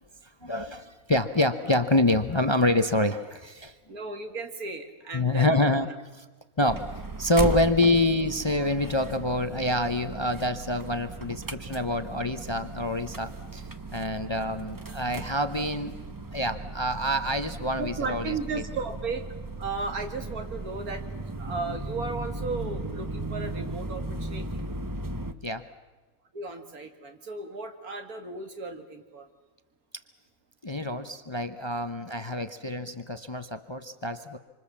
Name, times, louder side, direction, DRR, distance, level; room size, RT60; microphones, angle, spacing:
voice 1, 0.4-3.7 5.1-5.9 6.1-6.3 6.6-6.9 7.2-13.6 13.9-16.0 16.3-18.6 25.4-25.7 30.6-34.4, left 1 dB, 25° left, 9 dB, 0.7 m, -26 dB
voice 2, 3.9-5.5 8.6-8.7 17.8-24.7 26.3-29.3, right 4 dB, 85° right, 6 dB, 2.5 m, -35 dB
sound 1, 6.7-25.3, right 2 dB, 20° right, 0.7 m, -36 dB
26.5 x 25.5 x 7.3 m, 1.2 s
omnidirectional pair, 1.5 m